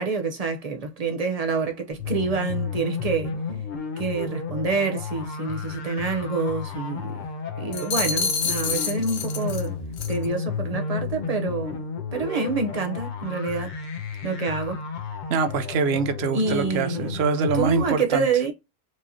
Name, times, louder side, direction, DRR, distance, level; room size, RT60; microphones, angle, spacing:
voice 1, 0.0-3.4 4.0-7.1 7.6-9.8 10.1-11.8 12.1-13.8 14.2-14.8 16.3-17.2 17.5-18.5, right 4 dB, 40° right, 0.8 m, -27 dB
sound 1, 1.9-17.9, left 5 dB, 50° left, 0.9 m, -32 dB
sound 2, 7.7-9.7 10.0-10.3, left 6 dB, 80° left, 0.9 m, -27 dB
voice 2, 15.3-18.3, right 5 dB, 90° right, 0.9 m, -24 dB
4.7 x 2.9 x 2.7 m
omnidirectional pair, 1.0 m